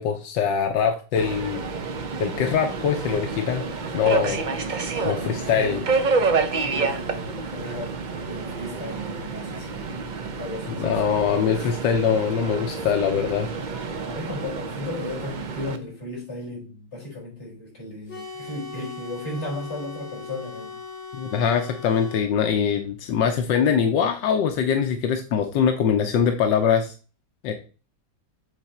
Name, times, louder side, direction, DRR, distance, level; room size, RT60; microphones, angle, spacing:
voice 1, 0.0-1.7 2.2-3.6 3.9-4.5 5.0-5.8 10.8-13.5 21.1-26.9 27.4-27.5, left 7 dB, 85° left, 1.5 m, -23 dB
Subway metro underground, 1.1-15.8, right 4 dB, 90° right, 0.4 m, -29 dB
voice 2, 5.2-5.9 6.6-10.9 11.5-11.7 12.7-12.9 14.0-20.8, left 2 dB, 35° left, 4.7 m, -36 dB
sound 1, 18.1-22.3, left 4 dB, 65° left, 2.6 m, -39 dB
8.3 x 4.1 x 4.3 m
omnidirectional pair, 1.9 m